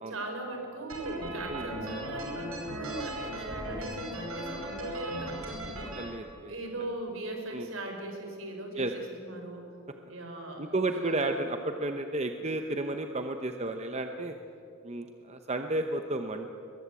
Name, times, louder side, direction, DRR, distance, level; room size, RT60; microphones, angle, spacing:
voice 1, 0.1-6.0 6.5-9.6 10.1-10.7 11.0-11.3, right 2 dB, 65° right, 3 dB, 4.8 m, -39 dB
sound 1, 0.9-6.0, right 1 dB, 80° right, 5.6 m, -38 dB
voice 2, 5.9-6.5 7.5-7.7 8.8-8.9 10.6-14.3 14.8-16.5, right 2 dB, 30° right, 6 dB, 0.9 m, -32 dB
22.0 x 21.5 x 8.4 m, 2.7 s
head